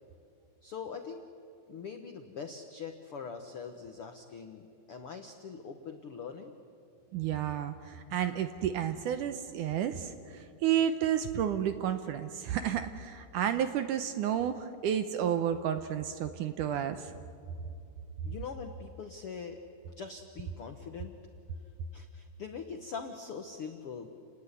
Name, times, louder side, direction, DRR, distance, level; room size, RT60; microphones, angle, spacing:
voice 1, 0.6-1.2 1.7-6.5 18.2-19.6 20.0-21.2 21.9-24.1, left 6 dB, 75° left, 6 dB, 1.3 m, -42 dB
voice 2, 7.1-17.1, right 9 dB, 75° right, 9 dB, 2.0 m, -31 dB
30.0 x 18.5 x 9.8 m, 2.5 s
omnidirectional pair, 4.4 m